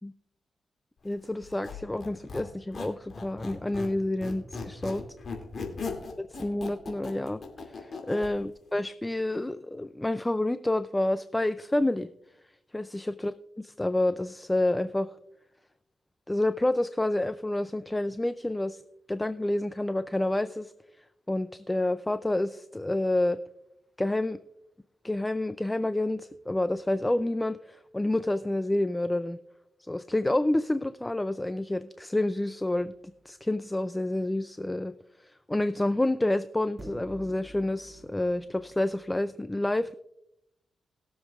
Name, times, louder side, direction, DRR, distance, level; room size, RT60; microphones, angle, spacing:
voice 1, 1.0-5.0 6.4-12.1 12.7-13.3 13.8-15.1 16.3-18.8 19.1-20.7 21.3-23.4 24.0-24.4 25.0-29.4 29.8-32.9 33.3-34.9 35.2-39.9, left 1 dB, 15° left, 12 dB, 0.4 m, -28 dB
Squeak, 1.4-4.0 4.2-8.3, left 4 dB, 55° left, 2.5 m, -38 dB
sound 1, 33.1-33.2 36.8-39.1, right 1 dB, 35° right, 2.1 m, -48 dB
21.0 x 7.3 x 2.4 m, 0.86 s
cardioid pair, 90°, 0 cm